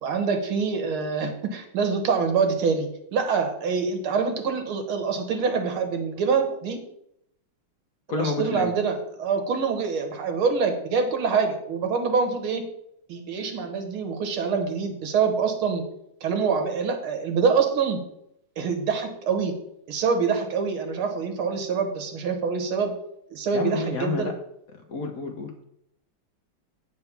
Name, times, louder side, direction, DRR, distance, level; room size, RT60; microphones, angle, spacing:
voice 1, 0.0-6.8 8.1-12.6 13.1-15.8 16.2-18.0 18.6-19.5 19.9-22.9 23.3-24.3, right 5 dB, 80° right, 6 dB, 2.1 m, -25 dB
voice 2, 8.1-8.7 23.5-24.3 24.9-25.6, left 4 dB, 55° left, 4 dB, 1.1 m, -29 dB
8.7 x 4.5 x 6.9 m, 0.77 s
omnidirectional pair, 2.3 m